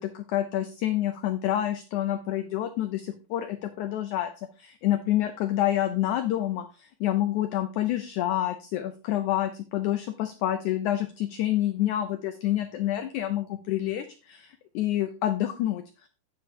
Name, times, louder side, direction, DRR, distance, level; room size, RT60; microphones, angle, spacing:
voice 1, 0.0-4.3 4.6-16.1, left 13 dB, 90° left, 9 dB, 1.7 m, -28 dB
9.7 x 9.0 x 2.8 m, 0.35 s
omnidirectional pair, 4.3 m